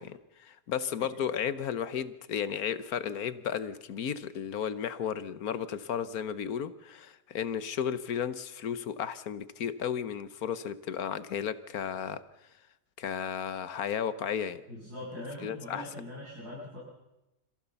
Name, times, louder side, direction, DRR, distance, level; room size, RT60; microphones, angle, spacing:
voice 1, 0.0-12.2 13.0-14.6 15.4-15.8, left 8 dB, 70° left, 13 dB, 1.5 m, -34 dB
voice 2, 14.7-16.8, left 1 dB, 80° right, -7 dB, 7.6 m, -42 dB
27.0 x 15.0 x 7.1 m, 0.95 s
omnidirectional pair, 1.6 m